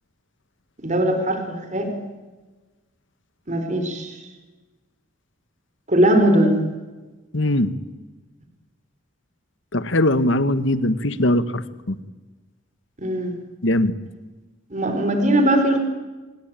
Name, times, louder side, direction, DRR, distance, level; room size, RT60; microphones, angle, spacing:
voice 1, 0.8-1.9 3.5-4.2 5.9-6.6 13.0-13.3 14.7-15.8, right 1 dB, 35° right, 6 dB, 4.0 m, -20 dB
voice 2, 7.3-7.7 9.7-11.6 11.9-12.0 13.6-13.9, left 1 dB, 65° left, 13 dB, 1.5 m, -20 dB
26.5 x 21.0 x 9.1 m, 1.2 s
head